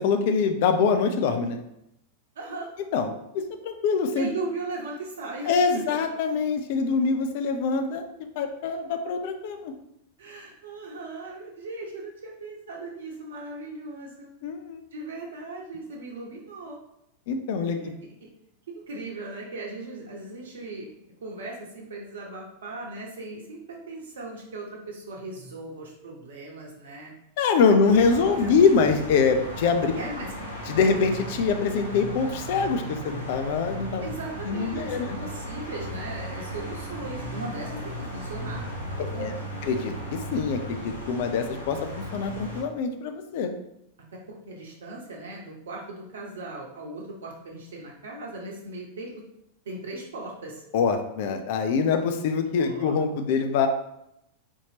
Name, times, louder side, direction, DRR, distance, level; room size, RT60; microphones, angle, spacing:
voice 1, 0.0-1.6 2.9-4.3 5.5-8.0 8.4-9.7 14.4-14.8 17.3-18.0 27.4-29.9 30.7-34.1 34.4-35.2 39.0-39.3 39.6-41.8 42.1-43.5 50.7-53.7, left 5 dB, 50° left, 6 dB, 0.4 m, -24 dB
voice 2, 2.4-2.7 4.2-5.5 10.2-14.3 14.9-16.8 17.7-17.9 18.7-20.9 21.2-27.1 27.6-28.5 30.0-30.3 34.0-39.4 44.5-49.1 49.6-50.6 52.6-52.9, right 2 dB, 65° right, -1 dB, 0.9 m, -38 dB
sound 1, 27.8-42.6, equal, 80° left, 0.8 m, -36 dB
4.5 x 2.8 x 2.8 m, 0.81 s
figure-of-eight pair, 90°, 0 cm